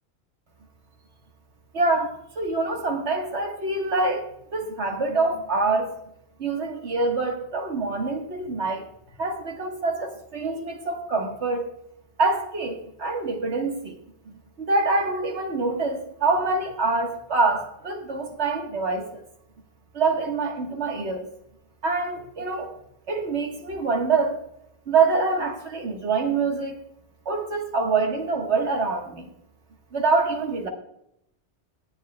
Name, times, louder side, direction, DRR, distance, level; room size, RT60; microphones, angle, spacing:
voice 1, 1.7-5.9 6.4-8.8 9.2-11.6 12.2-14.0 14.3-19.2 19.9-21.3 21.8-22.7 23.1-24.4 24.9-26.8 27.3-29.3 29.9-30.7, right 3 dB, 80° right, 3 dB, 1.8 m, -25 dB
17.0 x 9.6 x 2.2 m, 0.77 s
omnidirectional pair, 1.1 m